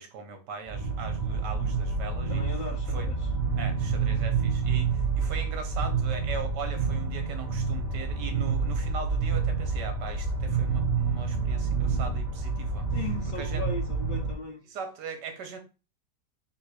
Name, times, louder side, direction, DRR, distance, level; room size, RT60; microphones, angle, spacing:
voice 1, 0.0-2.4 2.9-3.1 3.6-12.9 13.4-13.6 14.7-15.6, right 5 dB, 75° right, 1.5 m, -39 dB
sound 1, 0.7-14.3, right 4 dB, 25° right, 1.3 m, -28 dB
voice 2, 2.3-3.3 12.9-14.6, left 3 dB, 75° left, 0.4 m, -37 dB
3.9 x 2.7 x 4.7 m
omnidirectional pair, 1.9 m